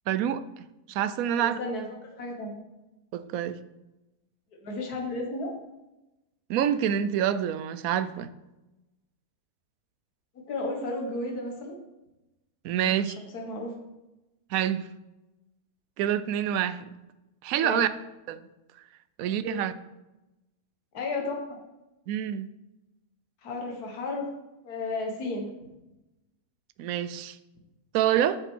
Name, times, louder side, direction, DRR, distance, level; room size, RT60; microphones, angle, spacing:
voice 1, 0.1-0.4 0.9-1.6 3.1-3.6 6.5-8.3 12.6-13.1 14.5-14.9 16.0-16.9 17.4-17.9 18.3-18.5 19.2-19.7 22.1-22.5 26.8-27.4 27.9-28.4, right 10 dB, 70° right, 13 dB, 0.9 m, -27 dB
voice 2, 1.4-2.6 4.6-5.5 10.4-11.8 13.1-13.7 17.6-17.8 19.4-19.6 20.9-21.6 23.4-24.3 24.6-25.5, left 2 dB, 75° left, 1 dB, 1.9 m, -33 dB
7.6 x 6.8 x 4.6 m, 0.98 s
omnidirectional pair, 1.7 m